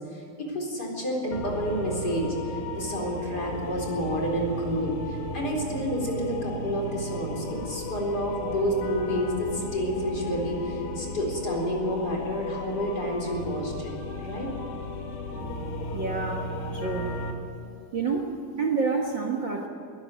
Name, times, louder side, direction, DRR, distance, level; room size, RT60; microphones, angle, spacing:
voice 1, 0.1-2.3 2.7-13.9 14.2-14.5, equal, 25° left, 0 dB, 4.3 m, -29 dB
sound 1, 1.3-17.3, left 2 dB, 75° left, 3.9 m, -35 dB
voice 2, 15.9-17.2 17.9-19.7, right 4 dB, 65° right, 2 dB, 1.1 m, -29 dB
21.5 x 13.5 x 9.4 m, 2.7 s
omnidirectional pair, 4.3 m